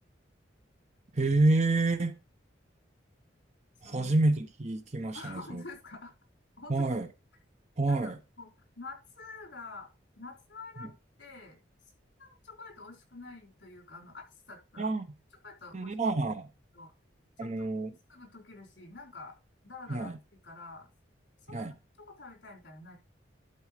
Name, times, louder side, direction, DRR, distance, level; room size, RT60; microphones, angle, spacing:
voice 1, 1.1-2.2 3.8-5.6 6.7-7.1 7.8-8.2 14.8-15.1 15.7-16.5 17.4-17.9 19.9-20.2 21.5-21.7, right 2 dB, 35° right, 0.8 m, -28 dB
voice 2, 3.8-4.2 5.1-6.1 6.6-6.9 7.9-8.5 8.8-9.9 10.2-11.9 12.2-14.9 15.4-16.0 16.7-16.9 17.4-17.7 18.1-19.4 19.6-20.1 20.4-20.9 21.5-23.0, left 3 dB, 65° left, 3.9 m, -47 dB
11.5 x 4.5 x 5.0 m
head